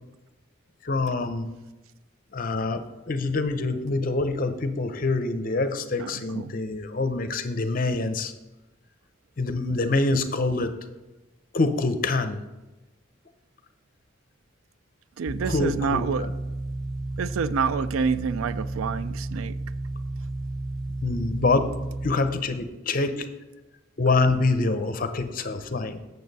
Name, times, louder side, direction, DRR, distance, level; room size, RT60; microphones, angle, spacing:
voice 1, 0.8-1.5 2.3-8.3 9.4-10.7 11.5-12.4 15.4-16.3 21.0-21.7 22.0-23.3 24.0-26.0, left 3 dB, 45° left, 0.6 m, -25 dB
voice 2, 6.0-6.5 15.2-16.3 17.2-19.6, right 5 dB, 80° right, 0.3 m, -28 dB
sound 1, 15.3-22.1, right 2 dB, ahead, 1.3 m, -32 dB
8.5 x 6.7 x 4.1 m
head